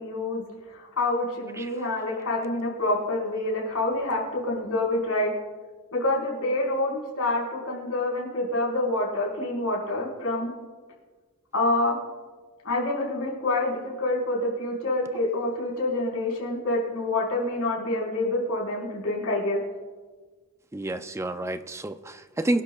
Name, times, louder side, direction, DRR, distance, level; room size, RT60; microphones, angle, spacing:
voice 1, 0.0-5.3 5.9-10.5 11.5-12.0 12.6-19.6, left 2 dB, 70° left, -3 dB, 4.7 m, -27 dB
voice 2, 20.7-22.6, right 1 dB, 10° right, 10 dB, 0.5 m, -29 dB
25.0 x 11.5 x 2.4 m, 1.4 s
head